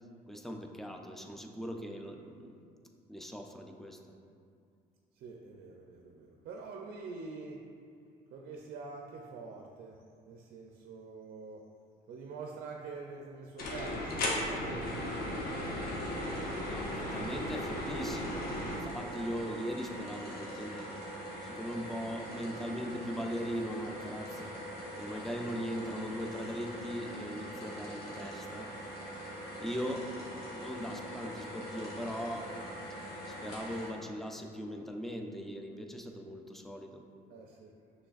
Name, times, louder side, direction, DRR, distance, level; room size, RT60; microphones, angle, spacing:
voice 1, 0.3-2.6 3.1-4.0 16.7-20.9 21.4-24.5 25.0-28.7 29.6-30.0 30.5-32.5 33.3-37.0, equal, ahead, 3 dB, 0.3 m, -39 dB
voice 2, 5.2-7.6 8.3-11.6 12.1-15.9 37.3-37.7, right 4 dB, 65° right, 1 dB, 0.4 m, -46 dB
sound 1, 13.6-18.8, left 1 dB, 60° left, 0.8 m, -36 dB
sound 2, 14.8-33.9, right 1 dB, 80° left, 1.3 m, -43 dB
6.1 x 3.2 x 2.4 m, 2.3 s
cardioid pair, 110°, 17 cm